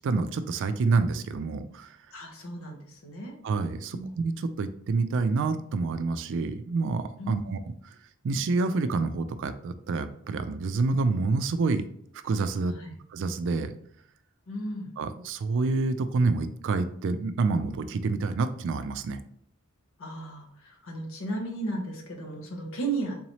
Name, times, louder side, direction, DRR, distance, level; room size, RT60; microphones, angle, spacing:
voice 1, 0.0-1.9 3.4-7.6 8.2-11.8 12.2-12.7 13.1-13.7 15.0-19.2, right 3 dB, 60° right, 11 dB, 0.3 m, -27 dB
voice 2, 2.1-3.3 3.9-4.1 7.2-7.6 12.7-12.9 14.5-14.9 20.0-23.2, right 2 dB, 65° left, 1 dB, 0.9 m, -35 dB
3.8 x 3.0 x 2.8 m, 0.64 s
head